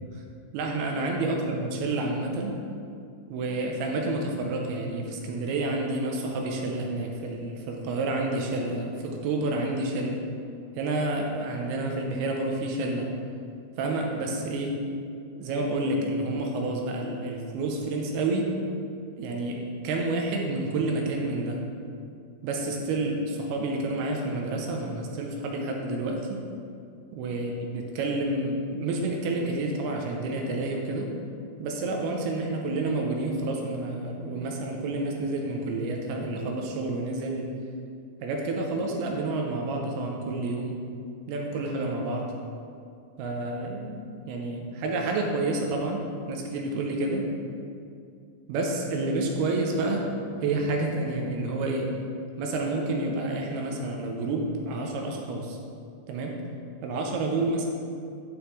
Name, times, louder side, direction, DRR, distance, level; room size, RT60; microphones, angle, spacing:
voice 1, 0.5-2.6 3.3-10.2 10.8-13.1 13.8-14.8 15.4-18.6 19.2-21.6 22.4-26.4 27.1-31.1 31.6-37.5 38.2-40.8 41.3-42.3 43.2-44.0 44.3-47.3 48.5-50.1 50.4-52.0 52.4-55.6 56.1-56.4 56.8-57.7, right 2 dB, 80° right, 1 dB, 2.6 m, -29 dB
11.0 x 6.3 x 3.2 m, 2.4 s
omnidirectional pair, 4.7 m